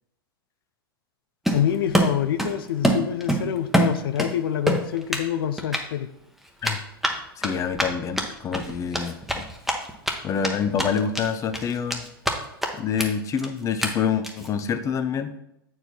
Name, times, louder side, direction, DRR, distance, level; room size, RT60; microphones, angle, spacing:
Run, 1.4-2.6 2.8-4.3 4.7-5.3 5.6-5.8 6.6-10.1 10.4-10.5 10.8-11.3 11.5-12.3 12.6-12.7 13.0-13.1 13.4-13.5 13.8-13.9 14.2-14.5, right 1 dB, ahead, 1.0 m, -24 dB
voice 1, 1.5-6.1, left 10 dB, 70° left, 10 dB, 0.5 m, -26 dB
voice 2, 7.4-9.4 10.2-12.1 12.7-15.4, left 7 dB, 25° left, 9 dB, 0.6 m, -27 dB
7.8 x 4.7 x 4.3 m, 0.82 s
hypercardioid pair, 105°, 12 cm